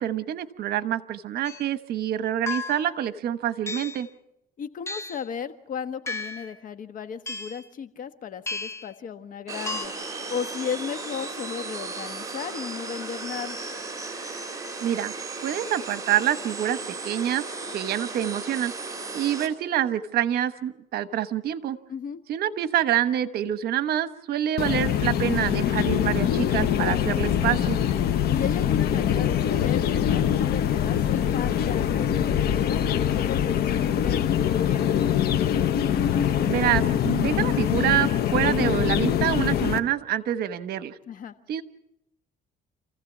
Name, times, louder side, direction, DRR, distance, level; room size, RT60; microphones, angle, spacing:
voice 1, 0.0-4.1 14.8-15.1 15.4-16.8 17.0-17.4 17.7-18.7 19.1-21.8 22.3-27.8 36.5-41.0 41.5-41.6, right 11 dB, 65° right, 12 dB, 1.2 m, -26 dB
sound 1, 1.4-1.7 2.5-3.0 3.7-4.1 4.9-5.3 6.1-6.5 7.3-7.6 8.5-8.9 9.7-9.9, left 3 dB, 15° left, 1.0 m, -34 dB
voice 2, 4.6-13.6 21.9-22.2 28.3-35.0 41.1-41.3, left 7 dB, 50° left, 10 dB, 1.4 m, -35 dB
sound 2, 9.5-19.5, right 3 dB, 20° right, 3.7 m, -35 dB
sound 3, 24.6-39.8, left 9 dB, 70° left, 1.2 m, -23 dB
27.5 x 15.5 x 7.3 m, 0.86 s
cardioid pair, 110°, 17 cm